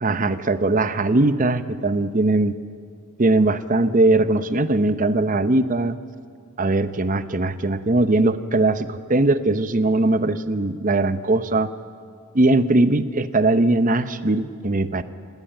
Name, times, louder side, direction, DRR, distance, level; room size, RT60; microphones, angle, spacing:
voice 1, 0.0-2.6 3.2-5.9 6.6-11.7 12.3-15.0, right 2 dB, 35° right, 12 dB, 0.7 m, -20 dB
19.0 x 18.0 x 9.0 m, 2.3 s
head